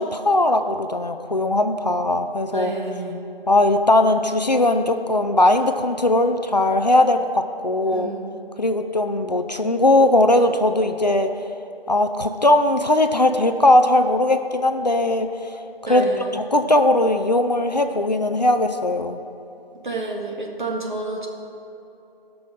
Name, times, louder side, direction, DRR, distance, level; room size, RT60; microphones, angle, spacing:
voice 1, 0.0-2.7 3.5-8.1 8.6-11.3 11.9-15.5 15.9-19.2, left 1 dB, 45° left, 7 dB, 0.5 m, -19 dB
voice 2, 2.5-3.2 7.8-8.3 15.9-16.3 19.8-21.3, right 2 dB, 55° right, 0 dB, 1.9 m, -29 dB
15.5 x 6.2 x 6.3 m, 2.9 s
figure-of-eight pair, 165°, 29 cm